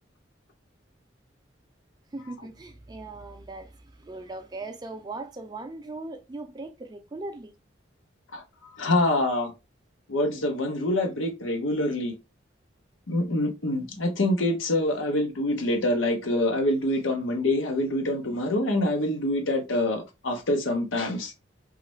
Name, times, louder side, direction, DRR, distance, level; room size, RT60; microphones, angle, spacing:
voice 1, 2.1-7.5, right 2 dB, 20° right, 0.4 m, -39 dB
voice 2, 8.3-9.5 10.1-12.1 13.1-21.3, left 1 dB, 80° left, 0.8 m, -26 dB
3.0 x 2.4 x 3.0 m
head